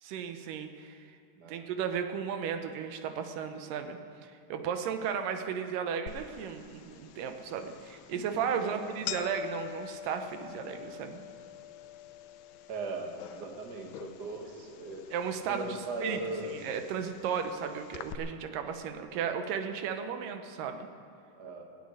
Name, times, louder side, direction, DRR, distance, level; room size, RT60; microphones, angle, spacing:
voice 1, 0.0-1.0 1.5-11.2 15.1-16.2 16.5-20.9, right 7 dB, 90° right, 7 dB, 2.5 m, -35 dB
voice 2, 1.4-1.7 8.6-9.0 12.7-15.1 15.5-16.6 21.4-21.6, right 2 dB, 40° right, 2 dB, 1.6 m, -39 dB
sound 1, 6.1-18.1, left 12 dB, 80° left, 1.8 m, -46 dB
16.5 x 8.2 x 9.6 m, 2.4 s
omnidirectional pair, 3.7 m